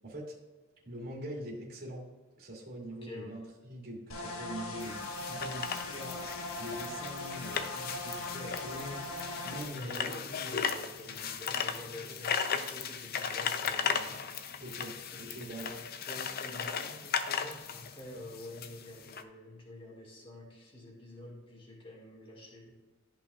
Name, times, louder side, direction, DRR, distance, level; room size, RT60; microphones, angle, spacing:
voice 1, 0.0-0.3 0.8-2.0 2.4-6.2 6.6-9.1 9.4-10.2 14.6-15.7, right 1 dB, 45° right, -4 dB, 2.2 m, -43 dB
voice 2, 2.9-3.4 9.7-14.3 15.1-22.7, left 1 dB, 25° left, -4 dB, 1.8 m, -48 dB
sound 1, 4.1-9.6, left 2 dB, 85° left, 1.3 m, -40 dB
sound 2, 4.8-19.2, left 7 dB, 45° left, 0.5 m, -37 dB
13.5 x 5.6 x 2.4 m, 1.2 s
head